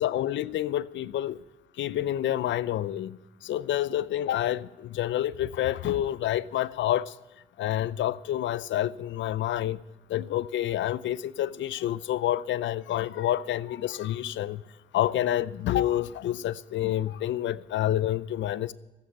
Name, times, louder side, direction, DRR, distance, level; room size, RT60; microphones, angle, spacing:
voice 1, 0.0-1.4 1.8-7.1 7.6-9.8 10.1-14.6 14.9-18.7, left 12 dB, 70° left, 0.6 m, -28 dB
14.5 x 8.7 x 9.1 m
cardioid pair, 90°, 20 cm